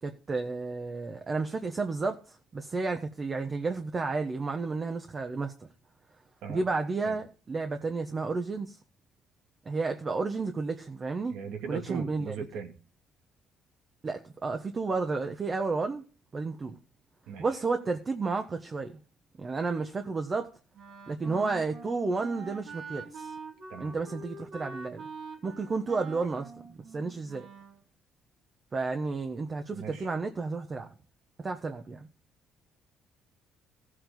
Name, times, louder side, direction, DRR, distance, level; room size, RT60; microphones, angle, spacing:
voice 1, 0.0-5.5 6.5-8.8 9.6-11.4 11.7-12.3 14.0-16.0 16.3-16.7 17.4-19.0 19.4-20.5 21.1-23.3 23.8-25.0 25.4-26.5 26.9-27.5 28.7-30.9 31.4-32.1, right 4 dB, 30° right, 1.2 m, -32 dB
voice 2, 11.3-12.7 17.3-17.5 23.7-23.9 29.7-30.1, right 7 dB, 85° right, 2.5 m, -38 dB
Wind instrument woodwind instrument, 20.7-27.8, right 4 dB, 60° right, 2.8 m, -45 dB
16.0 x 7.9 x 3.9 m
cardioid pair, 120°, 0 cm